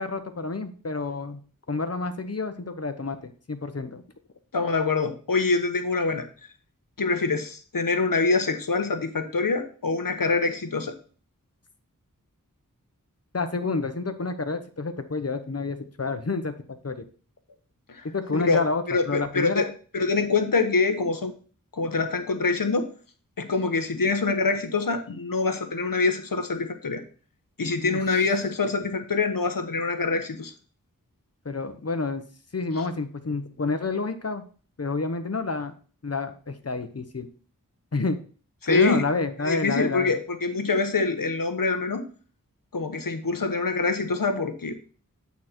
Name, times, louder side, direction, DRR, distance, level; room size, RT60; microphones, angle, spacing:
voice 1, 0.0-1.4 1.7-4.0 13.3-16.5 16.8-17.1 18.1-19.7 27.8-28.0 31.4-32.2 32.5-34.4 34.8-35.7 36.0-37.3 37.9-38.2 38.6-40.2, left 3 dB, 45° left, 9 dB, 1.0 m, -29 dB
voice 2, 4.5-6.3 7.0-10.9 17.9-18.1 18.3-18.6 18.9-19.7 19.9-21.3 21.7-22.9 23.4-27.0 27.6-30.5 38.6-39.0 39.4-42.0 42.7-44.7, left 3 dB, 75° left, 8 dB, 1.0 m, -25 dB
8.7 x 4.2 x 4.4 m, 0.41 s
wide cardioid pair, 40°, 34 cm